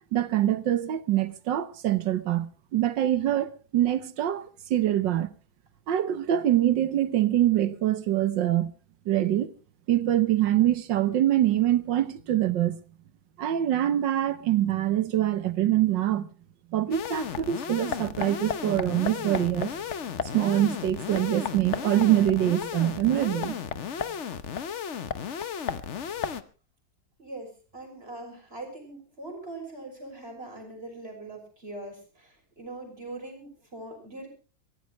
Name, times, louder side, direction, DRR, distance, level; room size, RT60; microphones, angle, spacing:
voice 1, 0.1-4.4 4.7-5.3 5.9-8.7 9.1-9.5 9.9-12.8 13.4-16.3 16.7-19.7 20.2-23.6, right 12 dB, 70° right, 1.6 m, -24 dB
sound 1, 16.9-26.4, left 7 dB, 50° left, 1.0 m, -34 dB
voice 2, 27.2-34.3, right 2 dB, 30° right, 6.4 m, -42 dB
23.5 x 15.0 x 3.1 m
omnidirectional pair, 2.2 m